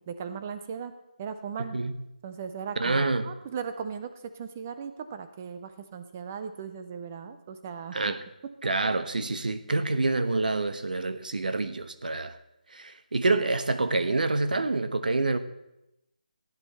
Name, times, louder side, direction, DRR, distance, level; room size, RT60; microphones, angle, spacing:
voice 1, 0.1-0.9 1.2-1.8 2.2-8.0, right 6 dB, 15° right, 9 dB, 0.4 m, -37 dB
voice 2, 1.6-1.9 2.8-3.3 7.9-8.2 8.6-12.3 12.7-15.4, right 3 dB, 70° right, 11 dB, 1.0 m, -27 dB
15.0 x 9.0 x 4.2 m, 0.89 s
hypercardioid pair, 175°, 5 cm